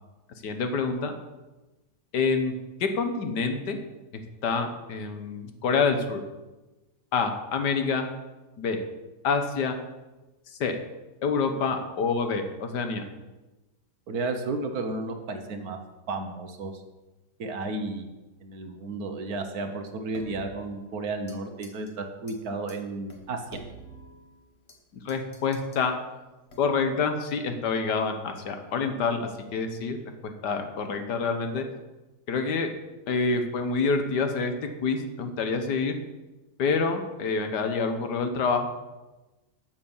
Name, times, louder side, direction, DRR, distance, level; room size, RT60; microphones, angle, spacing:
voice 1, 0.4-1.1 2.1-2.5 2.8-3.8 4.4-6.2 7.1-8.1 8.6-8.8 9.2-9.8 10.6-10.8 11.2-13.0 25.0-25.9 26.6-30.0 30.2-31.6 32.3-32.7 33.1-36.0 36.6-38.7, left 4 dB, 85° left, 6 dB, 1.7 m, -27 dB
voice 2, 14.1-15.8 16.1-16.7 17.4-18.1 18.4-23.4, right 3 dB, 65° right, 6 dB, 1.5 m, -33 dB
sound 1, 20.1-21.4 21.6-21.9 22.3-22.4 22.7-22.8 23.1-24.8 25.1-25.9 26.5-26.9, right 2 dB, 40° left, 1.7 m, -48 dB
8.0 x 7.2 x 7.1 m, 1.1 s
omnidirectional pair, 1.8 m